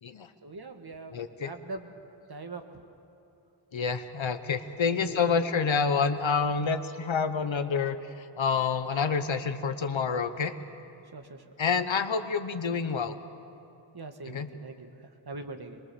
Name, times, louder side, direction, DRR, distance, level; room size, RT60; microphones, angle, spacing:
voice 1, 0.4-2.7 4.9-5.3 11.1-11.7 13.9-15.8, right 3 dB, 50° right, 6 dB, 1.5 m, -43 dB
voice 2, 1.1-1.5 3.7-10.5 11.6-13.2 14.3-14.5, left 5 dB, 75° left, 10 dB, 1.1 m, -28 dB
23.0 x 22.5 x 6.9 m, 2.8 s
wide cardioid pair, 75°, 47 cm